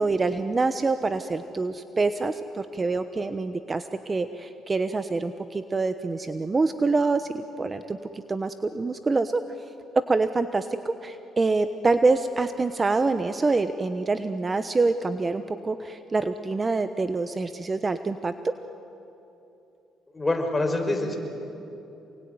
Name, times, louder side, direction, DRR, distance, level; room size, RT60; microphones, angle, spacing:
voice 1, 0.0-9.4 9.9-18.5, right 3 dB, 30° right, 10 dB, 1.1 m, -26 dB
voice 2, 20.1-21.2, left 2 dB, 20° left, 3 dB, 5.6 m, -25 dB
28.0 x 22.0 x 9.7 m, 2.9 s
cardioid pair, 80°, 0 cm